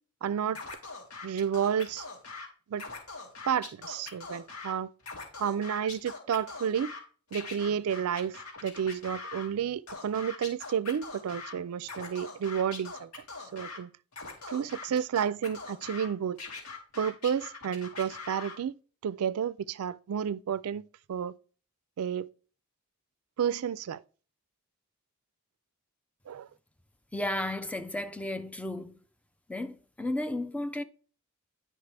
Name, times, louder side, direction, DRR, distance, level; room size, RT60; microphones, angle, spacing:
voice 1, 0.2-0.6 1.2-2.1 2.7-2.8 3.5-4.9 5.4-6.9 7.3-13.2 13.5-13.9 14.5-16.4 17.0-18.7 19.0-21.3 22.0-22.3 23.4-24.0 26.3-26.5, right 8 dB, 70° right, 0.4 m, -31 dB
Scratching (performance technique), 0.6-2.5 2.7-4.7 5.0-7.0 7.3-9.5 9.9-11.5 11.8-13.8 14.1-16.1 16.4-18.6, left 4 dB, 85° left, 2.3 m, -42 dB
voice 2, 27.1-29.0 29.5-30.8, left 1 dB, 5° left, 0.4 m, -33 dB
9.3 x 5.5 x 3.3 m
head